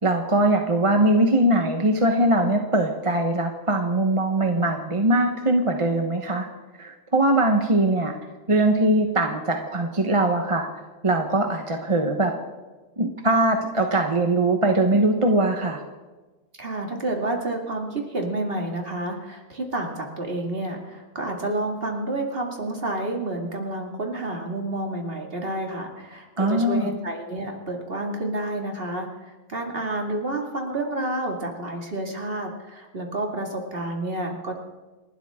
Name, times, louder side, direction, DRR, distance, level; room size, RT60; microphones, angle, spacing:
voice 1, 0.0-6.5 6.8-8.1 8.5-10.7 11.0-12.3 13.0-15.8 26.4-26.9, right 1 dB, 25° right, 3 dB, 1.1 m, -21 dB
voice 2, 16.6-34.5, right 1 dB, 45° right, 1 dB, 2.6 m, -29 dB
29.0 x 12.0 x 3.7 m, 1.2 s
omnidirectional pair, 1.4 m